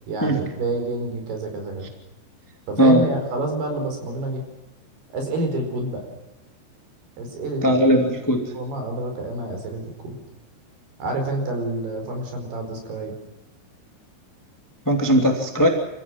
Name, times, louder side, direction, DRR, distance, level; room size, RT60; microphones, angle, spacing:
voice 1, 0.1-1.9 2.7-4.4 5.1-6.0 7.2-7.8 8.5-10.1 11.0-13.1, right 2 dB, 55° right, 4 dB, 6.5 m, -28 dB
voice 2, 7.6-8.5 14.8-15.7, equal, 10° left, 3 dB, 0.8 m, -18 dB
27.0 x 15.5 x 7.5 m, 0.98 s
omnidirectional pair, 5.7 m